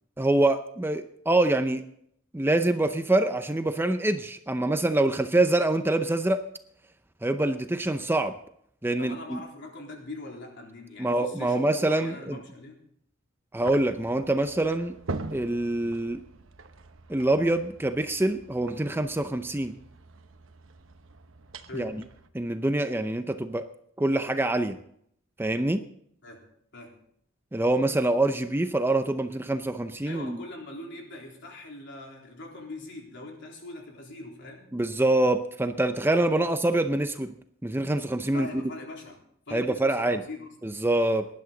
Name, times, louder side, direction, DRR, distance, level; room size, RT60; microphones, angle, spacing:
voice 1, 0.2-1.8 2.3-6.4 7.2-8.4 8.8-9.4 11.0-12.4 13.5-15.0 15.3-16.2 17.1-19.8 21.7-22.0 22.3-23.7 24.0-24.8 25.4-25.8 27.5-30.4 34.7-37.3 37.6-38.6 39.5-40.2 40.6-41.3, right 2 dB, 10° right, 8 dB, 0.6 m, -25 dB
voice 2, 9.0-12.8 21.7-21.9 26.2-26.4 26.7-27.0 30.0-34.6 36.4-36.5 38.3-40.5, left 2 dB, 60° left, 0 dB, 3.8 m, -42 dB
sound 1, 13.6-22.3, right 3 dB, 75° right, 1.0 m, -43 dB
19.0 x 11.0 x 3.9 m, 0.68 s
head